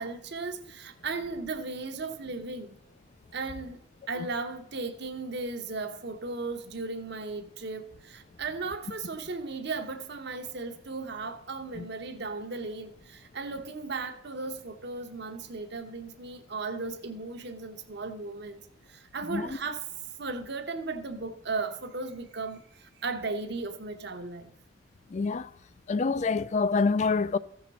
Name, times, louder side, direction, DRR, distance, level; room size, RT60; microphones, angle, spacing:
voice 1, 0.0-2.8 3.3-3.8 4.1-18.6 18.9-19.9 20.2-24.5, right 3 dB, 55° right, 0.9 m, -36 dB
voice 2, 25.1-25.5 25.9-27.4, left 4 dB, 35° left, 0.3 m, -26 dB
15.0 x 5.9 x 4.1 m
head